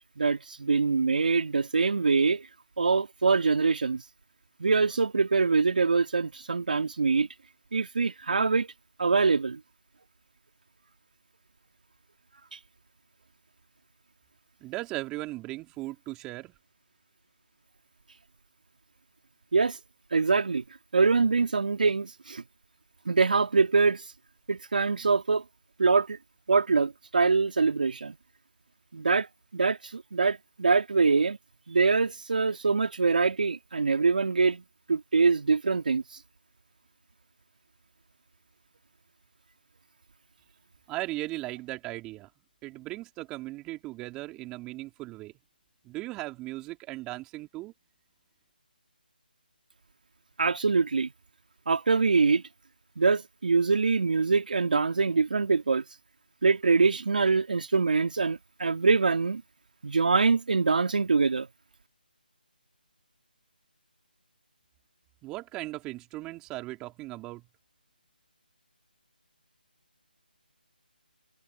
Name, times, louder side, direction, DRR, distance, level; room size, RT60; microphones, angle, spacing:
voice 1, 0.0-2.5 2.8-4.0 4.6-7.3 7.7-8.7 9.0-9.6 12.5-12.6 19.5-19.8 20.1-20.6 20.9-22.4 23.1-24.1 24.5-25.4 25.8-26.2 26.5-28.2 28.9-31.4 31.7-34.6 34.9-36.2 50.4-51.1 51.7-52.4 53.0-55.8 56.4-59.4 59.8-61.5, right 4 dB, 60° right, 2.1 m, -24 dB
voice 2, 14.6-16.6 40.9-42.3 42.6-45.3 45.8-47.7 65.2-67.4, right 19 dB, 10° right, 3.6 m, -37 dB
figure-of-eight pair, 160°, 5 cm